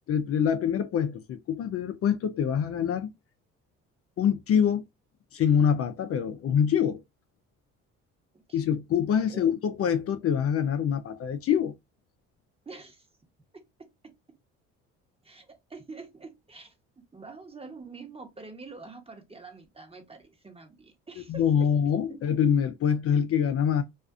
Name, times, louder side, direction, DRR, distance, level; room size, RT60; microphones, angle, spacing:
voice 1, 0.1-3.1 4.2-4.8 5.3-7.0 8.5-11.7 21.3-23.8, left 8 dB, 50° left, 0.5 m, -25 dB
voice 2, 12.6-13.1 15.2-16.7 17.1-21.7, right 3 dB, 20° right, 1.0 m, -46 dB
2.4 x 2.4 x 2.3 m
supercardioid pair, 75°, 30 cm